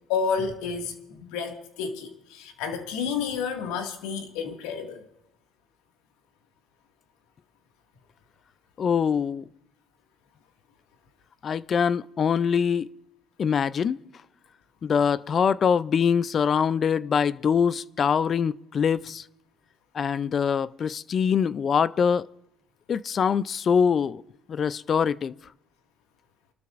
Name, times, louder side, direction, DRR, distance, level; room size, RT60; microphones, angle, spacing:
voice 1, 0.1-5.0, left 6 dB, 85° left, 1.9 m, -30 dB
voice 2, 8.8-9.4 11.4-12.9 13.4-14.0 14.8-19.2 19.9-22.3 22.9-24.2 24.5-25.3, left 7 dB, 40° left, 0.4 m, -24 dB
29.0 x 12.5 x 2.5 m
supercardioid pair, 95°, 0 cm